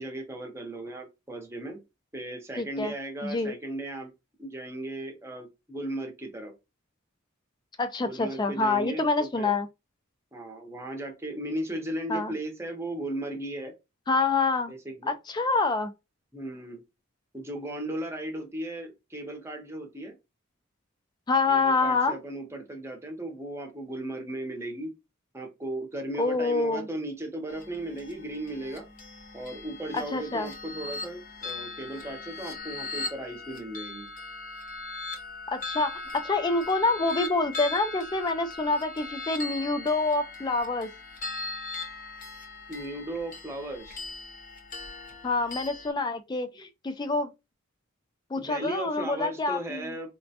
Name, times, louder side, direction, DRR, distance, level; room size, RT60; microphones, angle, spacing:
voice 1, 0.0-1.8 2.1-4.1 4.4-6.5 8.0-9.5 10.3-13.7 14.7-15.1 16.3-16.8 17.3-20.1 21.5-24.9 25.3-28.8 29.3-34.1 42.7-44.0 48.4-50.2, right 1 dB, 15° right, 0.7 m, -36 dB
voice 2, 2.6-2.9 3.2-3.6 7.8-9.7 12.1-12.4 14.1-14.7 15.1-15.9 21.3-22.2 26.2-26.9 29.9-30.5 35.5-40.9 45.2-47.3 48.3-49.9, left 3 dB, 20° left, 0.3 m, -27 dB
sound 1, 27.5-45.9, left 3 dB, 40° left, 0.7 m, -39 dB
4.1 x 2.1 x 2.7 m
head